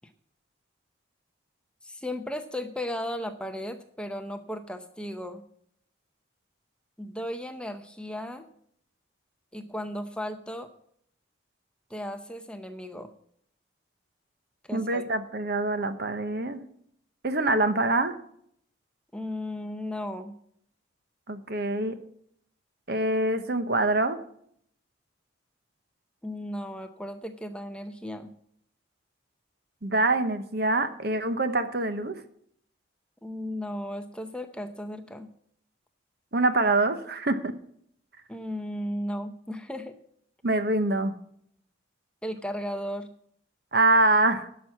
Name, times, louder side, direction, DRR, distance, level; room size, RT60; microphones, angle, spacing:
voice 1, 1.8-5.4 7.0-8.5 9.5-10.7 11.9-13.1 14.7-15.0 19.1-20.4 26.2-28.3 33.2-35.3 38.3-40.0 42.2-43.1, left 1 dB, 5° left, 7 dB, 0.7 m, -35 dB
voice 2, 14.7-16.6 17.2-18.2 21.3-22.0 22.9-24.2 29.8-32.2 36.3-37.5 40.4-41.1 43.7-44.5, right 2 dB, 50° right, 10 dB, 0.9 m, -25 dB
11.5 x 6.3 x 7.2 m, 0.66 s
head